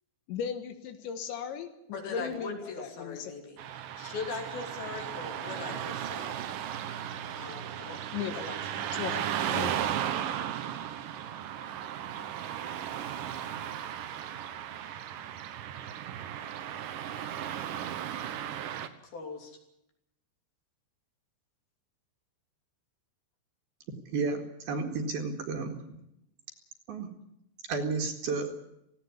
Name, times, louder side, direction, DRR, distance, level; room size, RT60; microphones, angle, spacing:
voice 1, 0.3-3.3 5.7-5.8 8.1-8.5 8.8-9.7, left 7 dB, 75° left, 8 dB, 3.5 m, -37 dB
voice 2, 1.9-6.4 7.3-8.0 8.3-8.8 19.1-19.5, left 4 dB, 55° left, 2 dB, 4.7 m, -40 dB
Car passing by / Traffic noise roadway noise, 3.6-18.9, right 10 dB, 80° right, 2.0 m, -35 dB
voice 3, 24.1-25.8 26.9-27.1 27.6-28.6, right 4 dB, 60° right, 4 dB, 3.5 m, -32 dB
18.0 x 17.0 x 9.9 m, 0.82 s
omnidirectional pair, 5.6 m